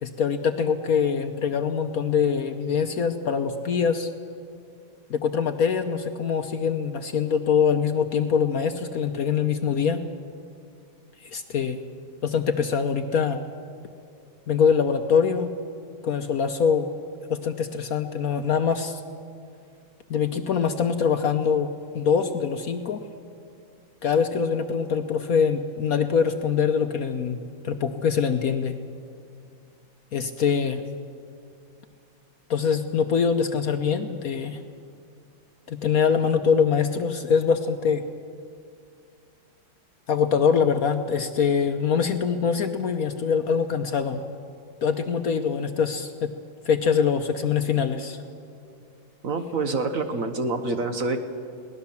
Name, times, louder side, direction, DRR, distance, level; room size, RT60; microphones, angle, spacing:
voice 1, 0.0-4.1 5.1-10.0 11.2-11.8 12.2-13.4 14.5-15.5 16.0-16.9 17.3-19.0 20.1-21.7 21.9-23.0 24.0-28.8 30.1-30.8 32.5-34.6 35.7-38.0 40.1-44.2 44.8-46.3 46.6-48.2, left 6 dB, 60° left, 7 dB, 1.1 m, -23 dB
voice 2, 49.2-51.2, right 3 dB, 50° right, 7 dB, 1.4 m, -27 dB
22.5 x 17.5 x 7.1 m, 2.3 s
omnidirectional pair, 2.1 m